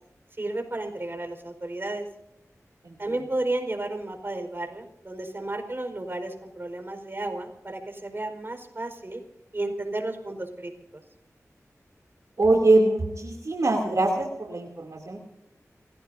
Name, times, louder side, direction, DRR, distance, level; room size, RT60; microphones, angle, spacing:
voice 1, 0.4-2.1 3.0-9.2 9.5-11.0, right 2 dB, 40° right, 5 dB, 4.7 m, -32 dB
voice 2, 12.4-15.2, right 2 dB, 70° right, 0 dB, 2.9 m, -23 dB
30.0 x 16.5 x 2.7 m, 0.86 s
wide cardioid pair, 50°, 6 cm